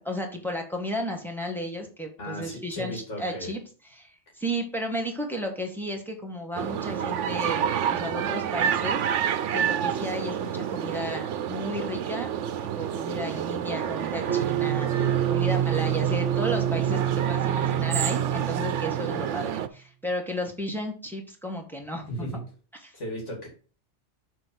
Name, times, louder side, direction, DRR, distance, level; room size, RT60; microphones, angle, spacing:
voice 1, 0.0-3.6 4.0-12.3 12.7-22.3 22.8-22.9, equal, ahead, 1 dB, 1.6 m, -34 dB
voice 2, 2.2-3.5 14.9-15.4 17.0-17.3 22.1-22.4 22.9-23.5, equal, 85° left, -2 dB, 3.3 m, -36 dB
sound 1, 6.6-19.7, right 9 dB, 85° right, 1.0 m, -29 dB
sound 2, 14.3-19.5, right 11 dB, 70° right, 1.3 m, -27 dB
6.4 x 4.4 x 6.3 m, 0.39 s
omnidirectional pair, 1.2 m